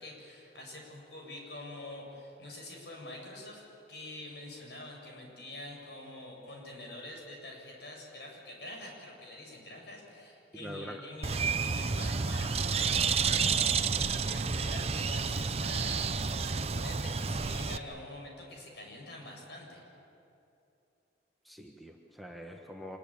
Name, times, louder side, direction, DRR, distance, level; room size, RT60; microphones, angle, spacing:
voice 1, 0.0-3.6 3.9-19.8, left 1 dB, 65° left, 0 dB, 7.4 m, -46 dB
voice 2, 10.5-11.0 21.4-23.0, equal, ahead, 1 dB, 1.4 m, -44 dB
Bird, 11.2-17.8, right 5 dB, 35° right, 0.6 m, -30 dB
26.0 x 22.0 x 9.0 m, 2.8 s
head